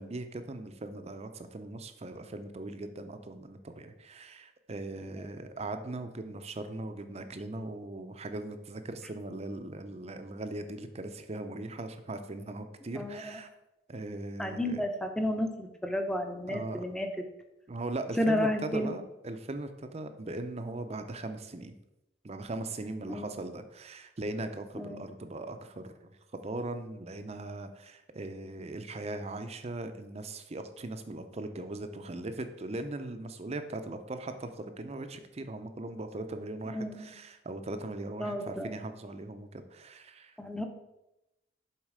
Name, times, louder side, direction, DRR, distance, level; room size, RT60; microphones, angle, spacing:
voice 1, 0.0-13.5 13.9-14.8 16.5-16.8 17.7-21.7 22.2-40.4, right 2 dB, 35° right, 8 dB, 0.6 m, -39 dB
voice 2, 13.0-13.4 14.4-17.1 18.2-18.9 23.1-23.3 24.8-25.0 36.7-37.1 38.2-38.7 40.4-40.6, left 1 dB, 5° left, 5 dB, 0.7 m, -32 dB
7.3 x 4.1 x 4.9 m, 0.92 s
head